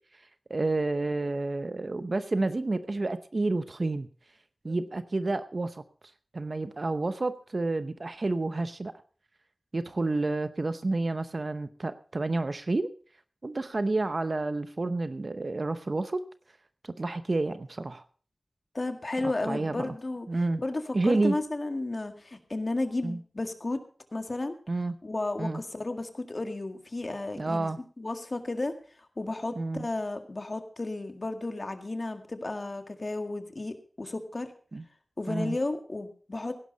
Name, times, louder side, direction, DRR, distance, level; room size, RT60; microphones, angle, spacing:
voice 1, 0.5-4.1 4.6-5.8 6.3-8.9 9.7-12.9 13.4-16.2 16.8-18.0 19.2-19.9 20.3-20.6 20.9-21.4 23.0-23.2 24.7-25.0 25.4-25.6 27.4-27.8 29.6-29.9 34.7-34.8 35.3-35.6, right 2 dB, 55° right, 11 dB, 0.8 m, -29 dB
voice 2, 18.7-20.3 20.6-23.8 24.1-24.6 25.0-27.7 28.0-28.7 29.2-34.5 35.2-36.5, left 2 dB, 50° left, 7 dB, 1.9 m, -33 dB
17.0 x 11.0 x 4.0 m, 0.40 s
wide cardioid pair, 65°, 0 cm